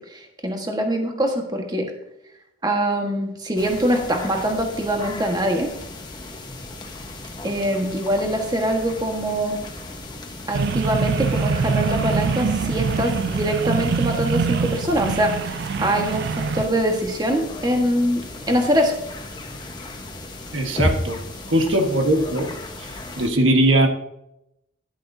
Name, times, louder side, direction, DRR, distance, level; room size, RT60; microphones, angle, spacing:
voice 1, 0.1-1.9 2.6-5.7 7.4-9.6 10.5-18.9, equal, 20° right, 2 dB, 1.4 m, -23 dB
sound 1, 3.6-23.3, left 1 dB, 25° left, 1.1 m, -35 dB
sound 2, 10.5-16.7, right 5 dB, 55° right, 0.3 m, -24 dB
voice 2, 20.5-21.2 21.5-22.5 22.8-23.9, right 1 dB, 85° right, 4 dB, 1.4 m, -20 dB
11.0 x 10.5 x 2.7 m, 0.82 s
head